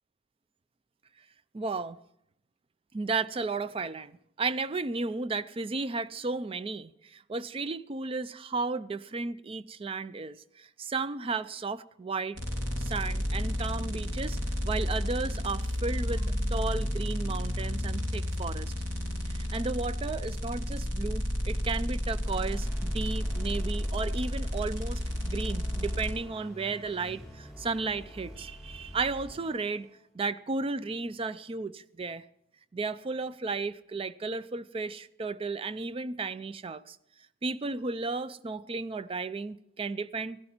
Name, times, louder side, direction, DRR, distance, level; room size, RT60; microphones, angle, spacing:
voice 1, 1.5-2.0 2.9-12.4 12.8-14.4 14.6-18.7 19.3-29.9 30.1-32.2 32.7-37.0 37.4-40.4, right 3 dB, 30° right, 0.4 m, -34 dB
sound 1, 12.3-26.1, equal, 85° right, 3.4 m, -31 dB
sound 2, 22.2-30.0, equal, ahead, 6.1 m, -47 dB
15.5 x 13.0 x 4.4 m
head